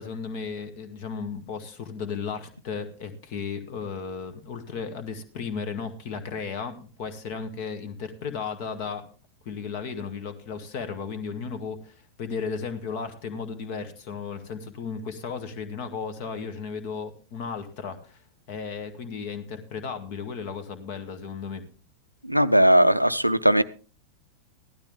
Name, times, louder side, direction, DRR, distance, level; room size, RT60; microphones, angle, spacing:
voice 1, 0.0-9.1 9.5-18.2 18.5-21.6, left 5 dB, 45° left, 10 dB, 1.7 m, -35 dB
voice 2, 22.2-23.6, equal, 90° right, 13 dB, 0.5 m, -18 dB
15.5 x 12.0 x 3.6 m, 0.36 s
figure-of-eight pair, 90°, 0 cm